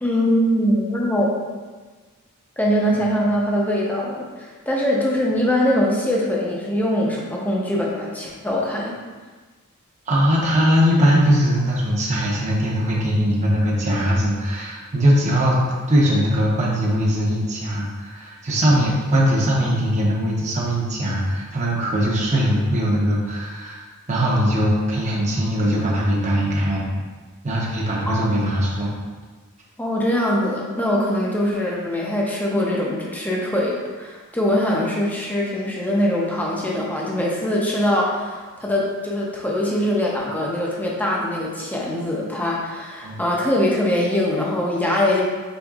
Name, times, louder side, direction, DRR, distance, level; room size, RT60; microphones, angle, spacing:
voice 1, 0.0-1.3 2.6-9.0 28.1-28.2 29.8-45.2, left 1 dB, 10° left, -3 dB, 0.7 m, -22 dB
voice 2, 10.1-26.9 27.4-28.9 43.0-43.2, equal, 35° right, -5 dB, 0.9 m, -20 dB
5.3 x 3.6 x 2.4 m, 1.4 s
head